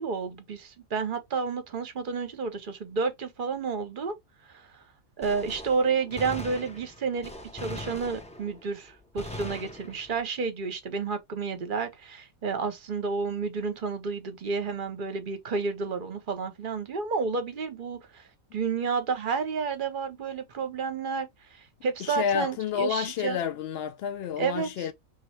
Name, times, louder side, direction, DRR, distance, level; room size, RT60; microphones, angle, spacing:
voice 1, 0.0-4.1 4.5-4.7 5.2-18.2 18.5-23.4 24.4-24.9, right 5 dB, 45° right, 0.8 m, -31 dB
Gunshot gunfire, 5.2-8.7 9.2-10.3, left 1 dB, 10° left, 0.3 m, -41 dB
voice 2, 22.0-24.9, left 8 dB, 65° left, 0.6 m, -30 dB
3.1 x 2.7 x 4.4 m
omnidirectional pair, 1.5 m